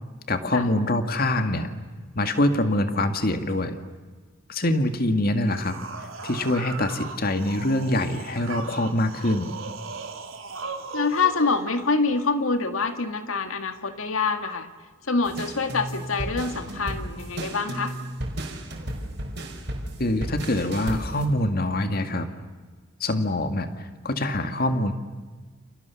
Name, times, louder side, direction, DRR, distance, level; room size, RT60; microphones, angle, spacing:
voice 1, 0.3-1.7 2.2-3.8 4.5-5.7 6.2-9.5 20.0-22.3 23.0-24.9, left 1 dB, 45° left, 7 dB, 2.0 m, -24 dB
sound 1, 5.3-11.7, right 4 dB, 85° right, 3.2 m, -37 dB
voice 2, 10.9-14.7 15.1-18.0, left 4 dB, 90° left, 8 dB, 2.0 m, -26 dB
sound 2, 15.2-21.3, right 1 dB, 55° right, 5.0 m, -34 dB
29.5 x 28.5 x 7.1 m, 1.4 s
head